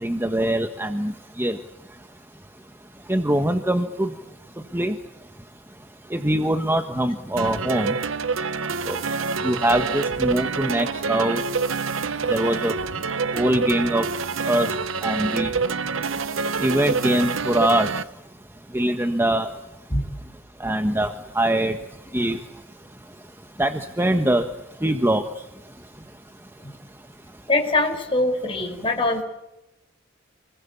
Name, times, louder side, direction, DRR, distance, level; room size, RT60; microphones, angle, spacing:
voice 1, 0.0-1.1 1.4-1.6 3.1-4.1 4.7-4.9 6.1-7.9 8.9-9.0 9.4-11.4 12.3-12.7 13.3-14.0 14.5-14.7 15.0-15.5 16.6-17.9 18.7-19.5 20.6-21.8 22.1-22.4 23.6-24.4 24.8-25.2, right 1 dB, 10° right, 6 dB, 1.4 m, -22 dB
sound 1, 7.4-18.0, right 4 dB, 75° right, 1.0 m, -26 dB
voice 2, 27.5-29.2, left 2 dB, 25° left, 1 dB, 5.6 m, -22 dB
29.0 x 22.0 x 8.5 m, 0.92 s
head